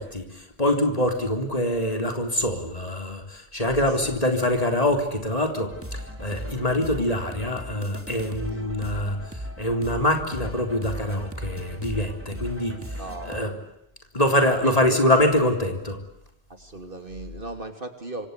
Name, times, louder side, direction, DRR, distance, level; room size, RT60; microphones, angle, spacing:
voice 1, 0.0-13.5 14.1-16.0, left 1 dB, 35° left, 4 dB, 3.8 m, -25 dB
voice 2, 3.8-4.2 8.5-8.7 13.0-13.7 14.6-15.0 16.5-18.3, right 2 dB, 55° right, 6 dB, 3.3 m, -36 dB
sound 1, 5.7-13.4, equal, 10° right, 3.4 m, -37 dB
26.5 x 26.0 x 8.3 m, 0.80 s
omnidirectional pair, 1.1 m